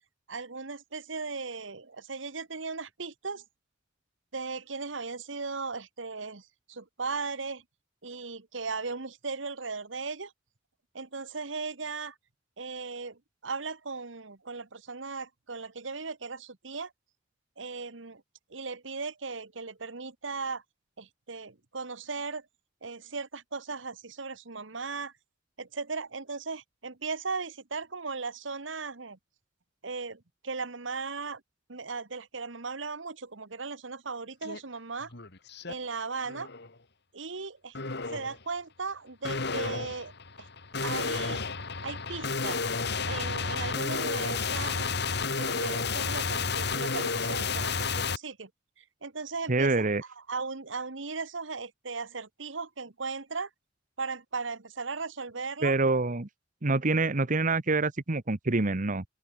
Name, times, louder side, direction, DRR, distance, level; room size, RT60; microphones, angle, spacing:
voice 1, 0.3-3.4 4.3-7.6 8.0-10.3 10.9-12.1 12.6-16.9 17.6-18.2 18.5-20.6 21.0-22.4 22.8-25.1 25.6-29.2 29.8-31.4 31.7-35.1 35.7-36.5 37.1-37.8 38.1-40.1 40.4-40.5 40.8-41.4 41.8-42.7 43.0-44.9 45.4-48.5 48.8-49.9 50.3-53.5 54.0-55.8, right 4 dB, 80° right, 1.6 m, -37 dB
sound 1, 34.4-34.6 35.0-35.7 36.2-36.7 37.7-38.4 39.2-48.2, left 4 dB, 65° left, 2.8 m, -31 dB
voice 2, 49.5-50.0 55.6-56.3 56.6-59.0, right 3 dB, 45° right, 1.2 m, -26 dB
open air
head